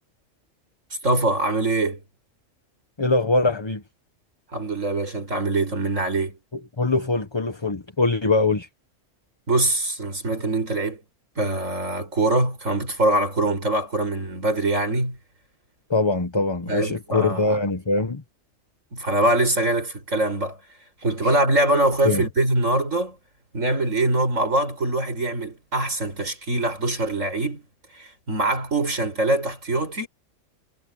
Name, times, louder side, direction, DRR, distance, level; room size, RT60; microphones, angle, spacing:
voice 1, 1.0-2.0 4.5-6.4 9.5-11.0 11.4-15.2 16.7-17.6 18.9-20.6 21.0-23.2 23.5-27.6 28.0-30.1, right 2 dB, 75° right, 7.1 m, -23 dB
voice 2, 3.0-3.8 6.8-8.7 15.9-18.2 21.2-21.3 22.0-22.2, left 3 dB, 20° left, 1.1 m, -22 dB
omnidirectional pair, 1.3 m